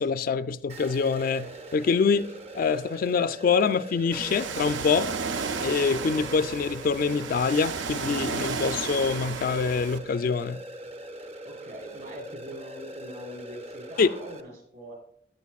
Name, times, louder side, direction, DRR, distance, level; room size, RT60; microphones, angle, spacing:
voice 1, 0.0-2.3 2.5-5.1 5.6-10.6 14.0-14.1, left 5 dB, 50° left, 0.3 m, -25 dB
sound 1, 0.7-14.4, right 1 dB, 35° right, 0.6 m, -42 dB
Ocean, 4.1-10.0, right 5 dB, 80° right, 0.6 m, -33 dB
voice 2, 11.4-14.9, equal, 50° right, 4.1 m, -43 dB
14.0 x 9.6 x 2.4 m
head